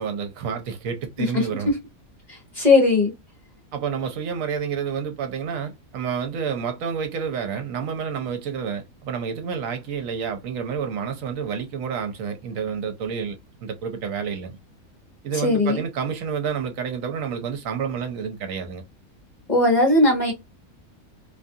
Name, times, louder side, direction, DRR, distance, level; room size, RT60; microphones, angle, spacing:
voice 1, 0.0-1.7 3.7-14.6 15.2-18.8, right 7 dB, 70° right, 1.0 m, -29 dB
voice 2, 1.2-1.8 2.3-3.1 15.4-15.8 19.5-20.3, left 2 dB, 35° left, 0.9 m, -19 dB
2.5 x 2.3 x 2.6 m
omnidirectional pair, 1.5 m